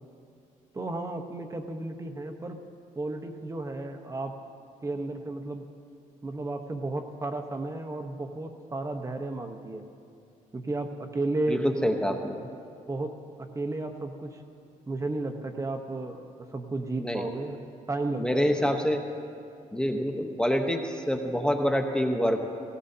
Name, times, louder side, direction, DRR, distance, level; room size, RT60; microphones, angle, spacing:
voice 1, 0.7-2.6 3.0-4.3 4.8-5.6 6.2-9.8 10.5-11.6 12.1-12.5 12.9-13.1 13.4-14.4 14.9-18.8, right 2 dB, 20° right, 5 dB, 1.0 m, -33 dB
voice 2, 11.5-12.4 17.0-17.3 18.2-19.0 19.7-22.5, equal, 5° left, 3 dB, 1.0 m, -26 dB
18.0 x 17.5 x 2.8 m, 2.6 s
cardioid pair, 95°, 14 cm